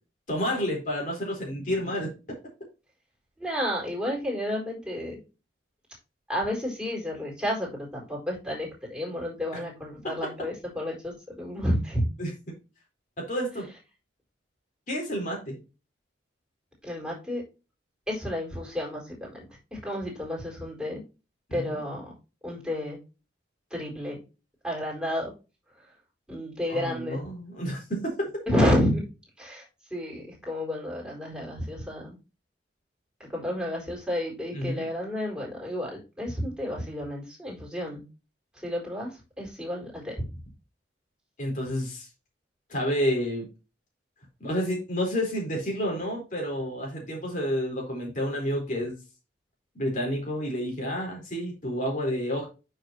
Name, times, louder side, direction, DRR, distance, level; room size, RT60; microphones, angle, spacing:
voice 1, 0.3-2.1 12.2-12.3 13.2-13.7 14.9-15.6 21.5-21.8 26.7-28.3 34.5-34.9 41.4-42.1 42.7-43.5 44.4-49.0 49.7-52.5, equal, 45° left, 0 dB, 4.1 m, -30 dB
voice 2, 3.4-5.2 6.3-12.1 16.8-17.4 18.1-19.5 19.7-21.0 21.5-22.1 22.4-23.0 23.7-24.2 24.6-25.3 26.3-27.2 28.5-29.0 29.4-32.2 33.2-38.0 38.5-40.4, equal, 5° right, -3 dB, 4.3 m, -31 dB
9.1 x 6.6 x 2.9 m, 0.29 s
head